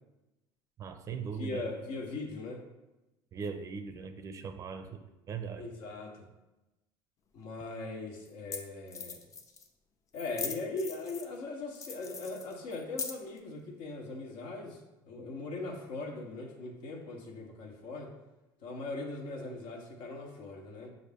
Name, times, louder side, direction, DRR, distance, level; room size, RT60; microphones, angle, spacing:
voice 1, 0.8-1.6 3.3-5.0 5.3-5.6, right 6 dB, 35° right, 7 dB, 0.4 m, -39 dB
voice 2, 1.3-2.6 5.5-6.2 7.3-9.2 10.1-18.1 18.6-20.9, left 3 dB, 70° left, 2 dB, 0.9 m, -40 dB
sound 1, 7.4-7.5 8.3-8.4 8.5-8.6 8.9-9.7 10.1-11.4 11.7-13.4, left 5 dB, 35° left, 0.5 m, -40 dB
6.2 x 2.5 x 3.4 m, 0.99 s
cardioid pair, 125°, 9 cm